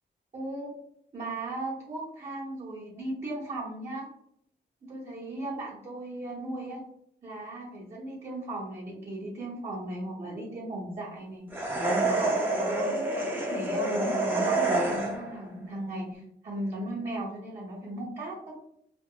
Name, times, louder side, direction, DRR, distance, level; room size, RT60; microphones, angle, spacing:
voice 1, 0.3-0.7 1.1-4.1 4.9-6.8 7.2-11.4 11.9-18.6, right 1 dB, 40° right, -7 dB, 0.9 m, -37 dB
sound 1, 11.5-15.4, right 2 dB, 10° right, 0.6 m, -27 dB
2.4 x 2.0 x 3.6 m, 0.70 s
wide cardioid pair, 135°, 18 cm